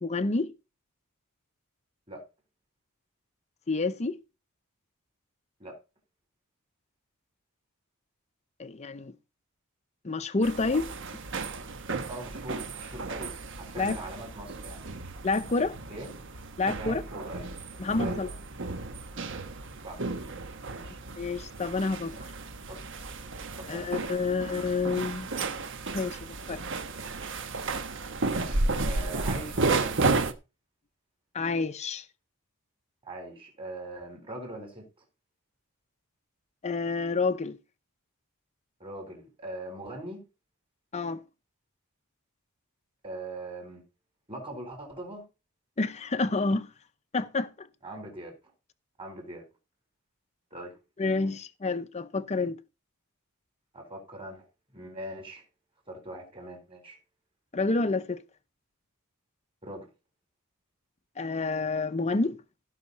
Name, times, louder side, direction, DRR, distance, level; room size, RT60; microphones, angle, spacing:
voice 1, 0.0-0.5 3.7-4.2 8.6-9.1 10.0-10.9 13.8-14.0 15.2-15.8 16.6-17.0 17.8-18.3 21.2-22.2 23.7-25.3 25.9-26.6 31.3-32.1 36.6-37.6 40.9-41.2 45.8-46.7 47.1-47.7 51.0-52.6 57.5-58.2 61.2-62.4, left 3 dB, 30° left, 0.6 m, -28 dB
sound 1, 10.4-30.3, right 3 dB, 60° right, 1.1 m, -33 dB
voice 2, 12.1-14.8 15.9-16.1 16.7-17.5 18.0-18.2 19.8-20.0 20.7-21.0 22.7-22.8 23.6-24.3 28.3-30.2 33.1-34.8 38.8-40.2 43.0-43.8 44.3-45.2 47.8-48.3 49.0-49.4 50.5-50.8 51.2-51.3 53.7-54.4 54.7-55.4 55.9-57.0 59.6-59.9, right 1 dB, 25° right, 4.1 m, -41 dB
16.0 x 5.8 x 4.1 m
head